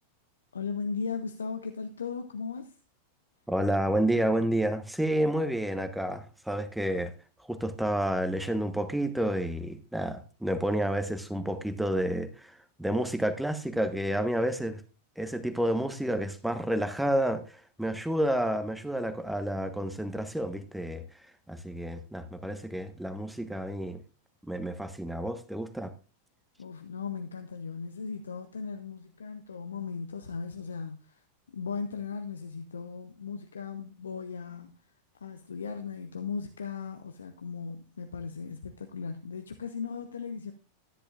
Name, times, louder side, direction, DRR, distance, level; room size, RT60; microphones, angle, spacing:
voice 1, 0.5-2.8 26.6-34.8 35.1-40.5, left 5 dB, 70° left, 0.8 m, -37 dB
voice 2, 3.5-7.1 7.5-14.8 15.2-21.0 21.5-24.0 24.5-25.9, right 1 dB, ahead, 1.1 m, -30 dB
13.5 x 10.0 x 2.4 m
figure-of-eight pair, 90°, 0 cm